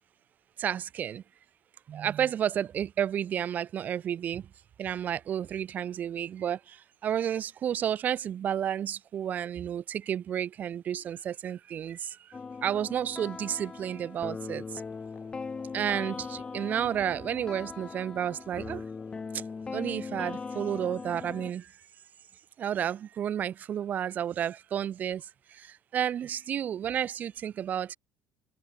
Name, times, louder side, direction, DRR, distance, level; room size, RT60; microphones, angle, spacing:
voice 1, 0.6-1.2 1.9-4.5 4.8-14.8 15.7-18.9 19.3-19.4 19.7-21.7 22.6-28.0, right 9 dB, 50° right, 1.1 m, -31 dB
sound 1, 12.3-21.5, left 4 dB, 25° left, 0.5 m, -39 dB
sound 2, 14.6-19.7, left 7 dB, 40° left, 5.4 m, -57 dB
supercardioid pair, 80°, 4 cm